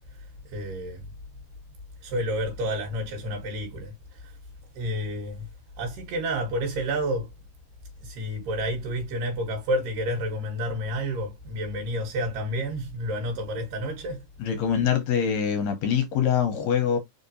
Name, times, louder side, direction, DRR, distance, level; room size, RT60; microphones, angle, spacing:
voice 1, 0.1-1.1 2.0-4.4 4.8-5.5 5.8-7.3 8.0-14.2, equal, 85° right, 2.9 m, -30 dB
voice 2, 14.4-17.0, left 8 dB, 75° left, 1.9 m, -24 dB
5.0 x 3.7 x 2.6 m
omnidirectional pair, 3.7 m